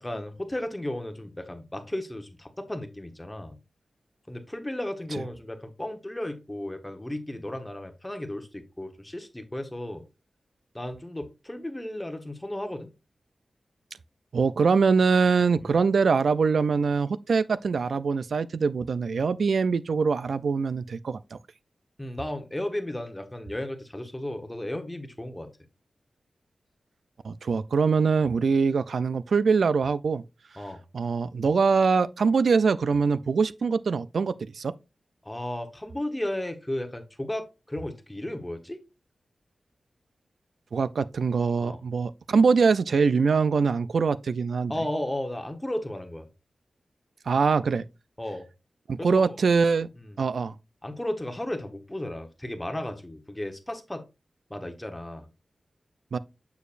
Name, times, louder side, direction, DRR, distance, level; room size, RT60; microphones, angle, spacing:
voice 1, 0.0-3.6 4.3-10.0 10.7-12.9 15.6-15.8 22.0-25.5 30.6-30.8 35.2-38.8 41.6-41.8 44.7-46.3 48.2-48.5 49.0-49.4 50.0-50.1 50.8-54.0 54.5-55.3, left 1 dB, 15° left, 1.1 m, -34 dB
voice 2, 14.3-21.4 27.2-30.2 30.9-34.7 40.7-44.7 47.3-47.8 48.9-49.9 50.2-50.5 56.1-56.2, right 5 dB, 75° right, 0.4 m, -23 dB
7.0 x 6.5 x 2.5 m
wide cardioid pair, 90°, 0 cm